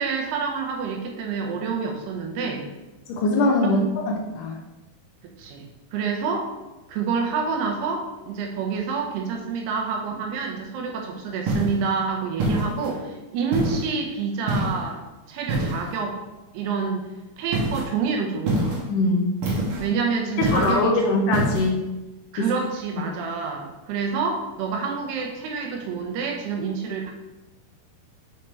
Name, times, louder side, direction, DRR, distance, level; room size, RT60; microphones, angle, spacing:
voice 1, 0.0-2.7 3.6-3.8 5.4-5.7 5.9-6.5 6.9-15.0 15.3-16.2 16.5-17.1 17.4-18.7 19.8-21.2 22.3-27.1, right 5 dB, 85° right, 2 dB, 3.0 m, -28 dB
voice 2, 3.1-3.8 4.4-4.6 18.9-19.3 20.4-21.8 22.4-22.5 23.0-23.2, left 2 dB, 75° left, 0 dB, 2.0 m, -22 dB
sound 1, 11.5-11.8 12.4-13.0 13.5-13.9 14.5-14.9 15.5-16.0 17.5-17.9 18.5-18.9 19.4-19.9 20.4-20.8 21.3-21.7, right 1 dB, 65° right, 2.8 m, -25 dB
6.5 x 5.6 x 3.3 m, 1.0 s
omnidirectional pair, 4.6 m